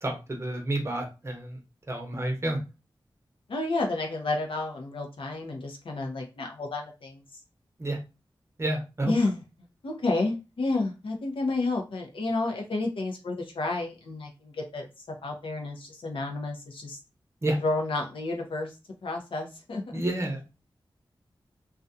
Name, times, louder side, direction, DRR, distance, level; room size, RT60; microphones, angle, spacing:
voice 1, 0.0-1.6 1.9-2.6 7.8-8.0 8.6-9.1 17.4-17.6 19.9-20.4, right 1 dB, 30° right, 2 dB, 0.7 m, -29 dB
voice 2, 3.5-7.2 9.0-9.4 9.8-14.9 15.2-17.0 17.6-18.7 19.0-19.8, left 2 dB, 80° left, 2 dB, 0.6 m, -30 dB
2.4 x 2.2 x 2.6 m, 0.28 s
wide cardioid pair, 110°, 9 cm